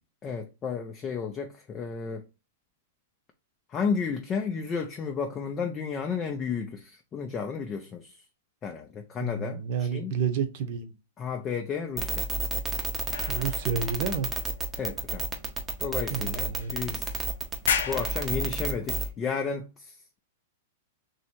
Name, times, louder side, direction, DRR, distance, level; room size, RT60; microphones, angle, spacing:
voice 1, 0.2-2.2 3.7-8.1 8.6-10.1 11.2-12.3 14.8-15.2 15.8-17.1 17.8-20.2, left 6 dB, 20° left, 0.4 m, -32 dB
voice 2, 9.2-10.9 13.3-14.3 16.1-17.0, right 6 dB, 45° right, 0.8 m, -30 dB
sound 1, 12.0-19.1, right 4 dB, 15° right, 0.7 m, -30 dB
sound 2, 13.1-15.1 15.8-15.9 16.6-17.2 17.5-19.1, left 7 dB, 80° left, 0.6 m, -34 dB
3.0 x 2.7 x 4.4 m
supercardioid pair, 155°, 0 cm